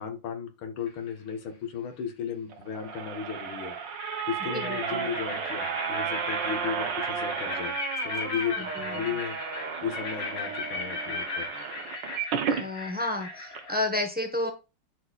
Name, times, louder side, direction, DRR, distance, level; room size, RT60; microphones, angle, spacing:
voice 1, 0.0-7.8 8.0-9.4 9.8-11.5, left 7 dB, 90° left, 6 dB, 2.2 m, -35 dB
sound 1, 0.9-1.3 2.8-2.9 3.3-13.8, left 3 dB, 60° left, 2.6 m, -37 dB
sound 2, 2.5-12.7 13.1-13.2 13.5-13.6, right 7 dB, 65° right, 1.6 m, -33 dB
voice 2, 12.5-14.5, left 1 dB, 5° right, 3 dB, 0.9 m, -30 dB
11.5 x 4.4 x 2.4 m, 0.29 s
omnidirectional pair, 2.2 m